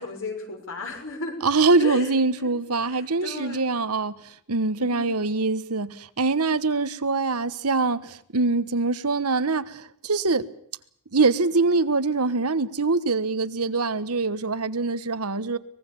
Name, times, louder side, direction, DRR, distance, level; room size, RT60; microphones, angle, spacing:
voice 1, 0.0-1.4 1.8-2.5 2.8-3.6 4.8-5.4, left 2 dB, 60° left, 6.3 m, -35 dB
voice 2, 1.4-4.2 4.5-10.5 11.1-15.6, right 3 dB, 80° right, 1.3 m, -24 dB
24.0 x 21.5 x 7.1 m
head